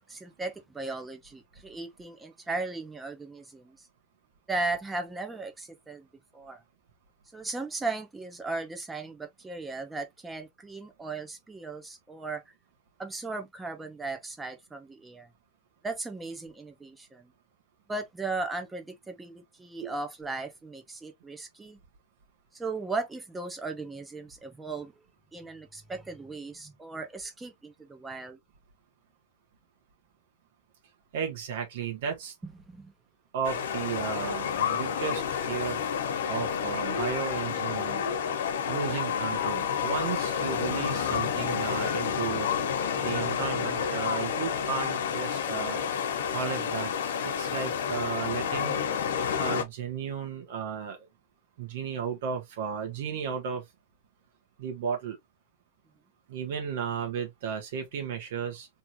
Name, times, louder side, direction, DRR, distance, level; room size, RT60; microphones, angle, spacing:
voice 1, 0.1-3.9 4.5-6.1 6.3-6.6 7.3-12.5 13.0-15.3 15.8-17.3 17.9-21.8 22.5-25.0 25.3-28.4 32.7-32.9 38.4-38.6, right 3 dB, 10° right, 0.9 m, -37 dB
voice 2, 31.1-32.3 33.3-35.8 36.3-38.0 38.7-42.5 43.0-45.8 46.3-46.9 47.2-48.8 49.4-51.0 51.6-53.6 54.6-55.2 56.3-58.7, right 7 dB, 65° right, 1.5 m, -34 dB
sound 1, 33.4-49.6, left 7 dB, 85° left, 1.0 m, -30 dB
3.5 x 2.8 x 2.9 m
supercardioid pair, 150°, 0 cm